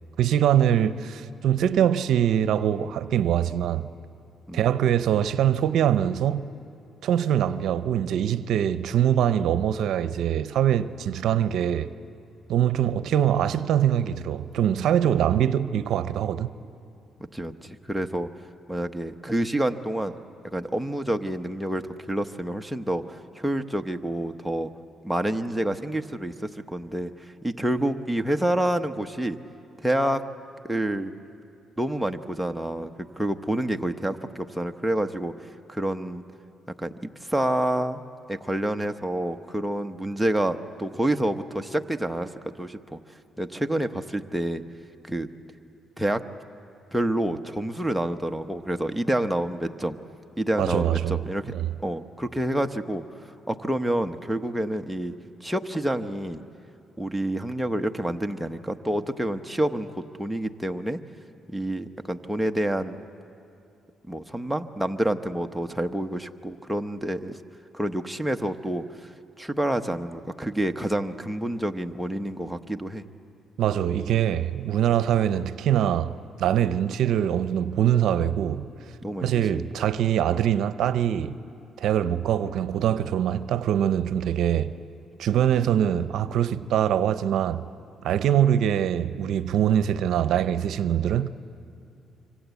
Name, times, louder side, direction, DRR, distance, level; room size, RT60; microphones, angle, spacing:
voice 1, 0.2-3.9 4.5-6.5 7.0-11.9 12.5-16.5 50.6-51.2 51.5-51.7 73.6-78.7 79.2-81.4 81.8-84.7 85.2-87.7 88.0-91.3, right 10 dB, 75° right, 0.7 m, -23 dB
voice 2, 17.3-18.3 18.7-20.1 20.5-24.7 25.0-29.4 29.8-30.2 30.6-31.1 31.8-35.3 35.7-36.2 36.8-38.0 38.3-42.3 42.6-43.0 43.4-44.6 45.0-45.3 46.0-46.2 46.9-50.0 50.4-51.5 51.8-53.0 53.5-55.1 55.4-56.4 57.0-61.0 61.5-63.0 64.1-67.4 67.7-69.1 69.4-73.0 79.0-79.7, right 1 dB, ahead, 1.0 m, -28 dB
26.0 x 25.0 x 8.3 m
cardioid pair, 90°, 0 cm